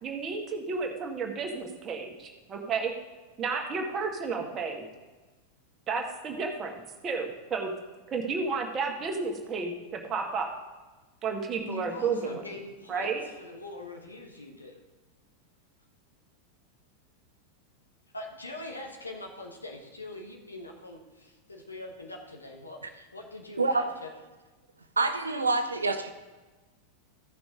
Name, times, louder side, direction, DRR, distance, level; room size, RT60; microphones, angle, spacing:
voice 1, 0.0-2.9 3.4-4.9 5.9-6.7 7.0-7.7 8.1-10.5 11.2-12.5 12.9-13.2, right 4 dB, 25° right, 2 dB, 1.6 m, -32 dB
voice 2, 11.7-13.1 13.4-14.8 18.1-24.1, left 2 dB, 80° left, 2 dB, 1.1 m, -42 dB
voice 3, 25.0-26.1, right 3 dB, 75° right, 9 dB, 0.7 m, -26 dB
15.0 x 5.8 x 3.8 m, 1.2 s
figure-of-eight pair, 90°, 0 cm